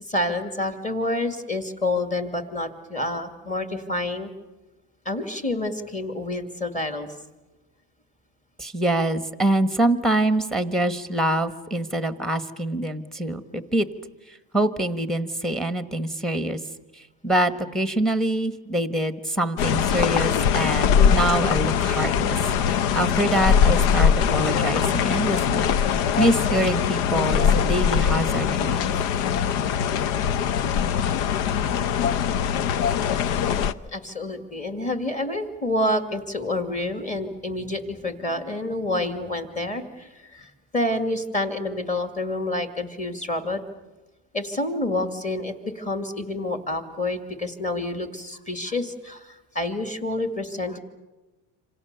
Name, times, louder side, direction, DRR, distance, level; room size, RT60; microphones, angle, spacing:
voice 1, 0.0-4.3 5.1-7.1 33.6-43.6 44.3-50.8, left 1 dB, 20° left, 7 dB, 2.3 m, -28 dB
voice 2, 8.6-13.9 14.5-16.6 16.9-25.7 26.2-28.9, right 1 dB, ahead, 11 dB, 1.2 m, -25 dB
sound 1, 19.6-33.7, left 8 dB, 80° left, 1.0 m, -22 dB
28.0 x 26.5 x 6.8 m, 1.1 s
cardioid pair, 160°, 40 cm